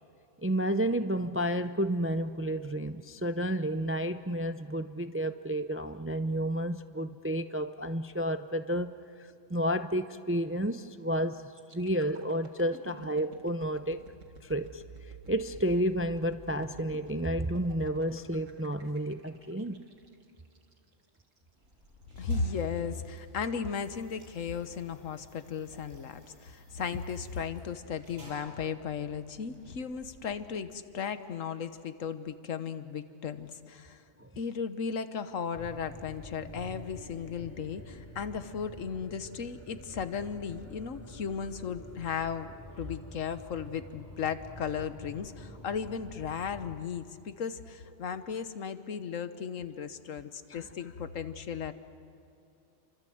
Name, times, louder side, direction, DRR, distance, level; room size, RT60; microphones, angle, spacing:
voice 1, 0.4-14.0 14.4-14.8 15.3-19.8 34.2-34.3 50.5-50.6, right 1 dB, 20° right, 10 dB, 0.3 m, -31 dB
sound 1, 11.5-21.4 21.8-22.0, right 4 dB, 80° right, 2.3 m, -51 dB
sound 2, 21.4-30.8, equal, 50° right, 6.9 m, -57 dB
voice 2, 22.2-34.0 34.4-42.5 42.8-51.7, left 6 dB, 85° left, 11 dB, 1.5 m, -36 dB
sound 3, 35.5-46.8, equal, 15° left, 3.0 m, -48 dB
29.0 x 25.0 x 7.8 m, 2.7 s
omnidirectional pair, 1.3 m